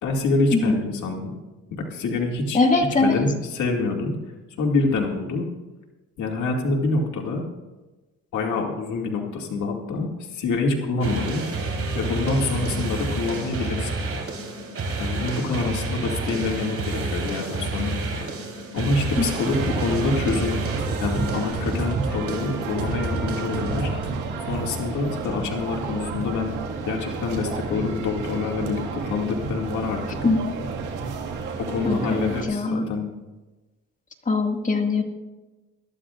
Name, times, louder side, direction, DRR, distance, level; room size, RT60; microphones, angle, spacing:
voice 1, 0.0-1.4 1.7-2.6 3.0-4.3 4.6-5.5 6.2-7.4 8.3-11.4 11.9-13.9 15.0-18.0 18.7-20.6 21.0-23.9 24.5-26.6 26.9-30.2 31.7-33.1, left 3 dB, 70° left, 0 dB, 2.3 m, -26 dB
voice 2, 2.5-3.2 19.2-19.3 30.2-30.5 31.8-32.8 34.3-35.0, left 3 dB, 25° left, 3 dB, 2.1 m, -22 dB
sound 1, 11.0-24.1, right 2 dB, 50° right, 3.6 m, -29 dB
sound 2, 19.1-32.4, right 5 dB, 90° right, 1.9 m, -31 dB
22.0 x 12.5 x 2.5 m, 1.2 s
cardioid pair, 90°, 30 cm